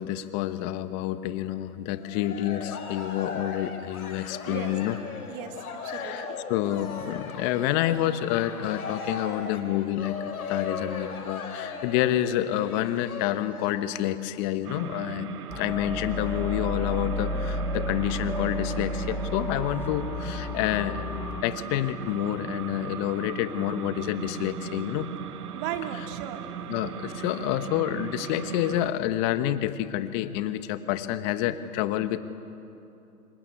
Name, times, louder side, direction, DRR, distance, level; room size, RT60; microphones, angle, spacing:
voice 1, 0.0-5.0 5.9-21.1 21.4-25.1 26.7-32.2, left 13 dB, 30° left, 12 dB, 1.2 m, -28 dB
Cheering, 1.9-13.7, left 5 dB, 65° left, 4.6 m, -37 dB
voice 2, 4.4-4.8 5.3-6.4 25.5-26.8, right 9 dB, 35° right, 6 dB, 2.2 m, -37 dB
sound 1, 14.6-28.9, right 9 dB, 75° right, 1.2 m, -38 dB
sound 2, 15.5-21.4, left 2 dB, 5° left, 0.8 m, -32 dB
26.5 x 23.0 x 9.8 m, 2.9 s
hypercardioid pair, 130°, 46 cm